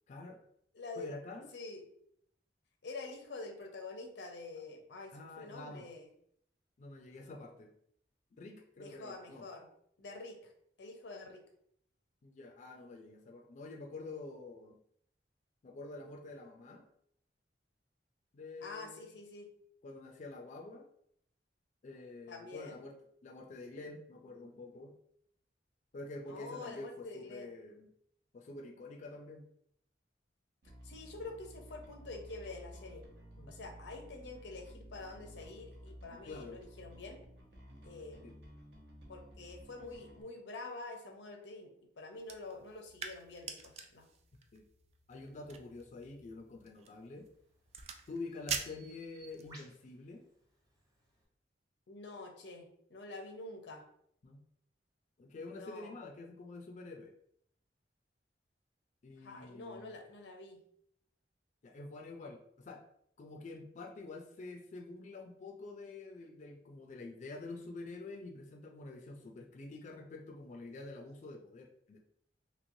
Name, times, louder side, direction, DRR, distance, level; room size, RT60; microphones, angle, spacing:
voice 1, 0.1-0.4 1.0-1.5 5.1-5.9 6.8-7.7 8.4-9.5 12.2-14.8 15.6-16.9 18.3-19.1 19.8-20.9 21.8-23.0 23.2-24.9 25.9-27.9 28.3-29.5 33.4-33.5 36.2-36.6 38.2-38.4 44.5-44.6 45.1-47.3 48.1-50.2 54.2-54.4 55.2-57.1 59.0-59.9 61.6-62.8 63.2-72.0, left 3 dB, 45° left, 1 dB, 0.4 m, -47 dB
voice 2, 0.7-1.1 1.5-1.8 2.8-6.1 8.8-9.7 10.0-10.5 10.8-11.4 18.6-19.5 22.3-22.8 26.3-27.5 30.8-33.0 33.5-37.2 37.8-38.3 39.1-44.1 51.9-53.8 55.5-55.9 59.2-60.6, left 3 dB, 85° left, 3 dB, 0.6 m, -47 dB
Bass guitar, 30.6-40.2, equal, 75° right, 0.7 m, -54 dB
sound 1, 42.2-49.6, right 6 dB, 35° right, 0.3 m, -46 dB
Bird vocalization bird call bird song, 47.0-51.3, right 1 dB, 20° right, 0.7 m, -62 dB
3.1 x 2.9 x 2.5 m, 0.69 s
head